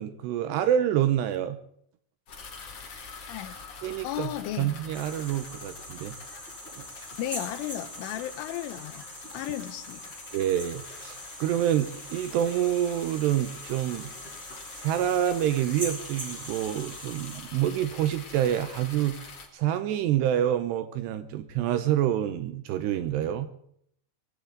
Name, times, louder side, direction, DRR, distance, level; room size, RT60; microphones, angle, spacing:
voice 1, 0.0-1.6 3.8-4.3 4.6-6.1 10.3-14.1 14.8-19.2 19.5-23.5, right 11 dB, 80° right, 11 dB, 2.6 m, -27 dB
sound 1, 2.3-19.5, left 4 dB, 40° left, 2.4 m, -45 dB
voice 2, 3.3-3.6 4.0-4.7 7.0-10.2, left 13 dB, 85° left, 9 dB, 3.4 m, -35 dB
sound 2, 4.9-17.4, equal, 10° right, 6.6 m, -43 dB
22.0 x 16.0 x 3.9 m, 0.67 s
omnidirectional pair, 5.5 m